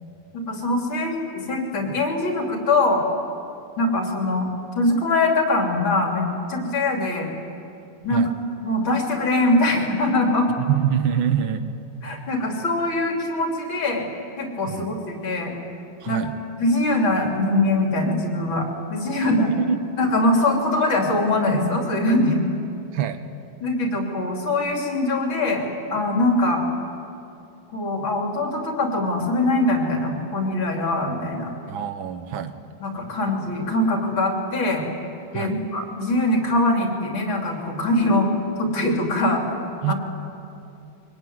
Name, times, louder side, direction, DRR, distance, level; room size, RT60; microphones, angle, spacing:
voice 1, 0.3-3.0 3.8-4.5 4.8-7.3 8.0-8.3 8.6-10.5 12.0-14.1 14.4-15.5 16.1-16.2 16.6-19.5 20.0-22.4 23.6-26.6 27.7-31.5 32.8-34.8 35.3-38.3 38.6-39.4 39.9-40.0, left 2 dB, 75° left, 1 dB, 4.2 m, -22 dB
voice 2, 10.7-11.7 14.6-14.8 16.0-16.3 19.2-19.8 22.9-23.2 31.7-32.5 35.3-35.6 39.8-39.9, right 9 dB, 80° right, 10 dB, 1.9 m, -25 dB
23.5 x 23.0 x 9.6 m, 2.8 s
omnidirectional pair, 2.2 m